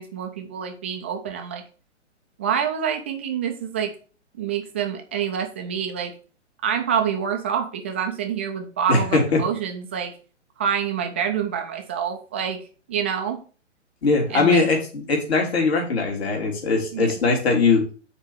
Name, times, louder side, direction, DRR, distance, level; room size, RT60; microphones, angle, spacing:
voice 1, 0.0-1.6 2.4-4.0 4.4-6.1 6.6-10.1 10.6-12.6 12.9-13.4 14.3-14.7 16.9-17.1, right 8 dB, 10° right, 4 dB, 0.3 m, -27 dB
voice 2, 8.9-9.4 14.0-17.8, left 4 dB, 55° left, 1 dB, 3.1 m, -20 dB
5.9 x 4.3 x 6.3 m, 0.38 s
figure-of-eight pair, 125°, 36 cm